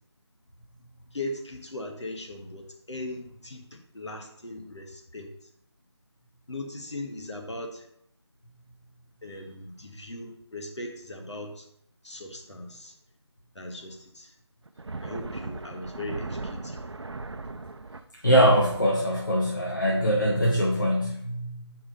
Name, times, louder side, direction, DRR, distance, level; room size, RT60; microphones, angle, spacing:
voice 1, 1.1-5.3 6.5-7.9 9.2-11.7 12.0-12.9 13.5-14.3 15.0-16.8, left 1 dB, 75° left, 2 dB, 1.3 m, -39 dB
sound 1, 14.6-18.0, right 3 dB, 70° right, 0.6 m, -37 dB
voice 2, 18.2-21.8, equal, 45° left, 0 dB, 0.8 m, -23 dB
5.1 x 4.7 x 5.7 m, 0.71 s
figure-of-eight pair, 180°, 15 cm